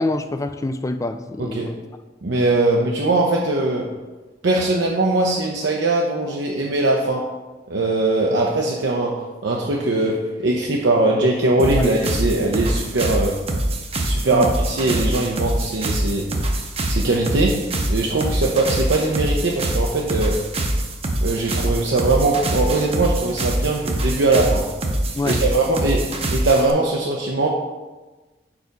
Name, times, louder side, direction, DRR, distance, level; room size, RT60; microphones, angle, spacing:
voice 1, 0.0-1.8 8.3-8.4 11.8-11.9 14.3-14.5 25.1-25.4, left 2 dB, 20° left, 9 dB, 0.3 m, -26 dB
voice 2, 1.4-1.7 2.2-3.9 4.4-7.2 7.7-9.1 9.4-13.4 14.0-16.3 16.9-17.5 17.9-20.4 21.2-24.6 25.2-26.0 26.3-27.5, right 2 dB, 70° right, -2 dB, 0.7 m, -20 dB
sound 1, 11.6-26.7, right 1 dB, 35° right, 0.7 m, -24 dB
4.9 x 4.7 x 5.1 m, 1.2 s
head